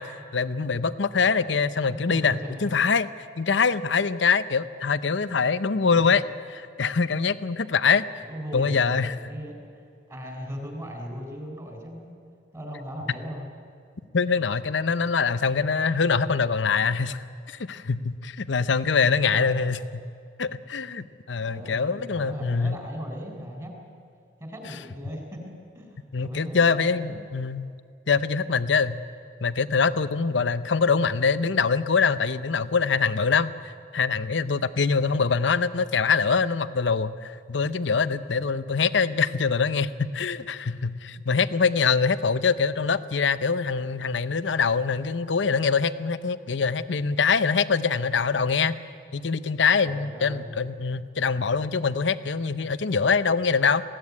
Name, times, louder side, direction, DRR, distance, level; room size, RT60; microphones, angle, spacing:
voice 1, 0.0-3.1 3.4-6.2 6.8-8.0 8.5-9.1 14.1-20.0 20.4-22.8 26.1-27.7 28.1-29.0 29.4-48.7 49.1-53.8, left 5 dB, 75° left, 14 dB, 0.7 m, -24 dB
voice 2, 1.9-2.6 6.1-6.2 8.3-9.6 10.1-12.1 12.5-13.5 14.3-14.4 19.2-19.7 21.4-23.9 24.4-27.3 49.9-50.4, equal, 20° right, 1 dB, 4.0 m, -38 dB
20.5 x 16.0 x 9.6 m, 2.4 s
head